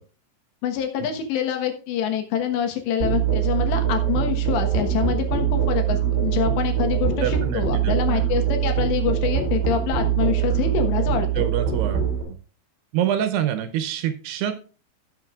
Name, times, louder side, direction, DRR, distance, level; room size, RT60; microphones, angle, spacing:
voice 1, 0.6-11.4, left 8 dB, 80° left, 5 dB, 3.5 m, -26 dB
Musical instrument, 3.0-12.2, right 9 dB, 30° right, 3.6 m, -23 dB
voice 2, 7.2-8.2 11.4-12.1 12.9-14.5, right 10 dB, 75° right, 9 dB, 2.7 m, -26 dB
17.0 x 7.4 x 2.4 m, 0.37 s
omnidirectional pair, 5.0 m